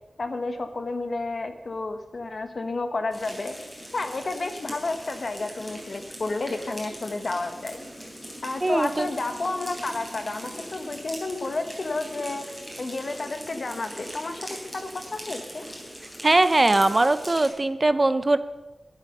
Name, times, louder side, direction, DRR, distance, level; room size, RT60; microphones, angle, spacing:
voice 1, 0.2-3.6 3.9-7.9 8.4-12.4 12.8-15.6, left 3 dB, 55° left, 7 dB, 1.3 m, -31 dB
sound 1, 3.1-17.5, equal, 5° left, 3.8 m, -41 dB
voice 2, 8.6-9.1 16.2-18.4, right 2 dB, 30° right, 12 dB, 0.5 m, -20 dB
12.5 x 10.5 x 5.5 m, 1.1 s
wide cardioid pair, 110°, 0 cm